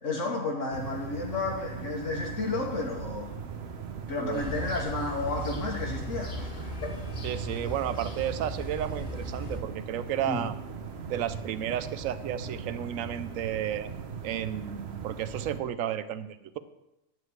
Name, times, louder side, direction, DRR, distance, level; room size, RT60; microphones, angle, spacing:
voice 1, 0.0-3.3 4.1-6.9 10.3-10.5, left 3 dB, 70° left, -1 dB, 1.5 m, -32 dB
sound 1, 0.7-15.6, right 6 dB, 60° right, 1.0 m, -39 dB
sound 2, 4.3-9.6, left 1 dB, 35° left, 1.6 m, -39 dB
voice 2, 7.2-10.5 11.1-13.9 14.2-16.6, right 10 dB, 85° right, 13 dB, 1.0 m, -32 dB
10.5 x 4.6 x 7.9 m, 0.90 s
omnidirectional pair, 1.3 m